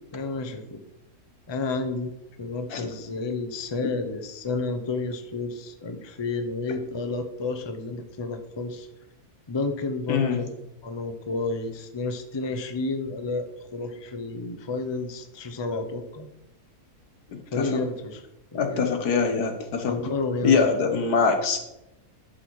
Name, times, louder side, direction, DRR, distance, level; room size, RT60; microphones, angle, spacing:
voice 1, 0.1-0.8 1.5-2.1 2.4-8.9 9.5-10.5 10.8-13.5 13.7-16.3 17.5-18.2 18.5-18.9 19.9-20.7, left 3 dB, 25° left, 7 dB, 0.6 m, -31 dB
voice 2, 10.1-10.4 17.3-17.8 18.5-19.9 20.4-21.6, left 5 dB, 80° left, 6 dB, 1.7 m, -23 dB
11.0 x 6.4 x 4.7 m, 0.86 s
omnidirectional pair, 1.6 m